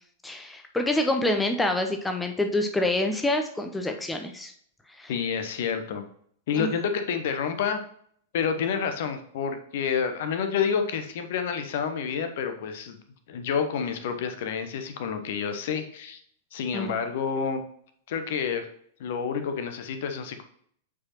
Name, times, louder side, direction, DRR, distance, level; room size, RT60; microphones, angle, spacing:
voice 1, 0.2-4.5 5.0-5.1 6.6-6.7 16.7-16.9, left 1 dB, 10° left, 5 dB, 0.6 m, -27 dB
voice 2, 5.1-6.0 6.5-7.8 8.3-13.0 13.3-16.2 16.5-17.6 18.1-18.7 19.0-20.4, left 6 dB, 55° left, 8 dB, 0.8 m, -29 dB
8.4 x 4.8 x 2.9 m, 0.63 s
figure-of-eight pair, 95°, 0 cm